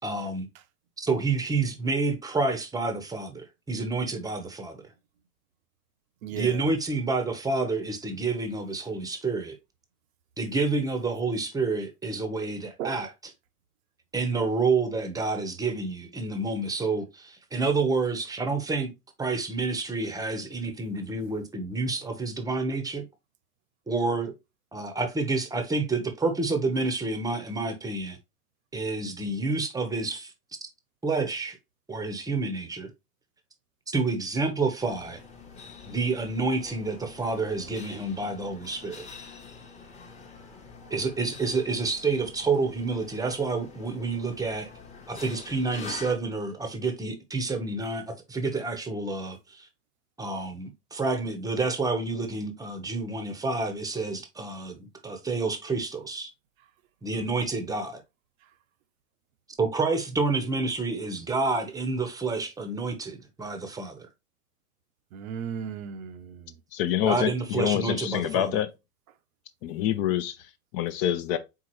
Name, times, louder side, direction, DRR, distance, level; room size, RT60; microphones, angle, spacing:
voice 1, 0.0-0.5 1.0-4.8 6.4-9.6 10.4-13.1 14.1-18.9 19.2-23.0 23.9-24.3 24.7-28.2 28.7-30.3 31.0-31.6 31.9-32.9 33.9-35.2 35.9-39.0 40.9-44.7 45.1-49.7 50.2-56.3 57.0-58.0 59.6-64.1 67.0-68.6, right 3 dB, 10° right, 0.8 m, -29 dB
voice 2, 6.2-6.6 12.8-13.0 65.1-66.6, right 8 dB, 60° right, 0.7 m, -36 dB
sound 1, 34.8-46.1, left 4 dB, 15° left, 0.9 m, -46 dB
voice 3, 66.7-68.7 69.6-71.4, left 11 dB, 40° left, 0.6 m, -27 dB
4.6 x 3.7 x 2.9 m
hypercardioid pair, 105°, 47 cm